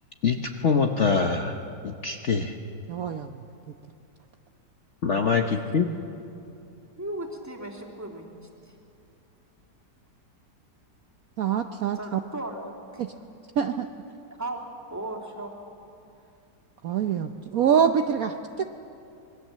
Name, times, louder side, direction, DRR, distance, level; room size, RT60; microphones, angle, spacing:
voice 1, 0.2-1.6 1.8-2.6 5.0-5.9, left 5 dB, 45° left, 3 dB, 1.1 m, -24 dB
voice 2, 2.9-3.4 11.4-12.2 13.0-13.1 13.6-13.9 16.8-18.6, right 8 dB, 60° right, 6 dB, 1.1 m, -25 dB
voice 3, 5.1-5.4 7.0-8.3 8.6-8.7 11.9-13.0 14.4-14.6 14.9-15.6, right 1 dB, 10° right, -1 dB, 2.9 m, -36 dB
26.5 x 21.5 x 7.5 m, 2.7 s
omnidirectional pair, 2.0 m